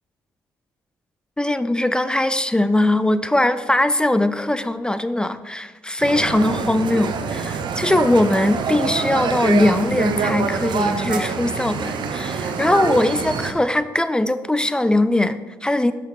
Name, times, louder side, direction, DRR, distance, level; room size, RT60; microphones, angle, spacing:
voice 1, 1.4-15.9, left 1 dB, 10° left, 12 dB, 0.3 m, -20 dB
sound 1, 6.0-13.5, right 5 dB, 65° right, 0.6 m, -25 dB
5.9 x 5.7 x 3.9 m, 1.2 s
supercardioid pair, 55°, 9 cm